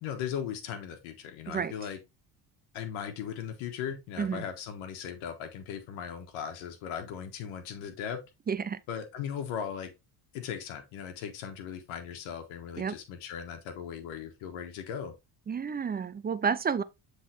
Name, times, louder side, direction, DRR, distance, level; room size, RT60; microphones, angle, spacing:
voice 1, 0.0-2.0 2.7-8.2 8.9-9.9 10.3-15.1, left 8 dB, 90° left, 1.5 m, -38 dB
voice 2, 8.5-8.8 12.8-13.0 15.5-16.8, right 6 dB, 20° right, 0.4 m, -30 dB
7.4 x 3.8 x 3.4 m
cardioid pair, 95°, 47 cm